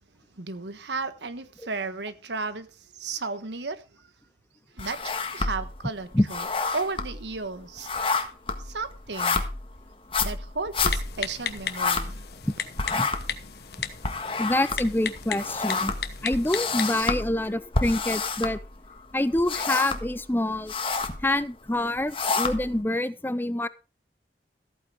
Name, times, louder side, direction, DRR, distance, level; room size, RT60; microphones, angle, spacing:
voice 1, 0.4-2.7 2.9-4.1 4.7-5.0 5.3-6.5 6.7-7.9 8.6-9.4 10.2-12.2, right 4 dB, 85° right, 1.4 m, -34 dB
sound 1, 4.8-5.8 6.1-12.5 12.8-19.0 19.3-20.2 20.5-21.2 21.8-22.8, left 4 dB, 30° left, 1.5 m, -29 dB
Typing, 10.9-17.1, left 7 dB, 65° left, 1.2 m, -36 dB
voice 2, 14.4-15.9 16.2-18.6 19.1-20.7 21.2-23.7, left 1 dB, 10° left, 0.5 m, -26 dB
14.5 x 9.0 x 4.7 m
head